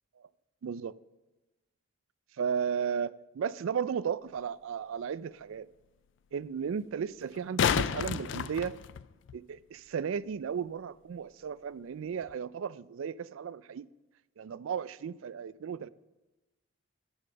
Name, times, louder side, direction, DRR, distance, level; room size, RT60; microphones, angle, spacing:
voice 1, 0.6-1.0 2.4-5.7 6.3-8.7 9.3-13.9 14.4-15.9, right 7 dB, 70° right, 0.3 m, -35 dB
sound 1, 4.4-4.5 7.2-9.4 12.2-12.3, left 7 dB, 55° left, 0.3 m, -30 dB
9.8 x 7.2 x 6.7 m
head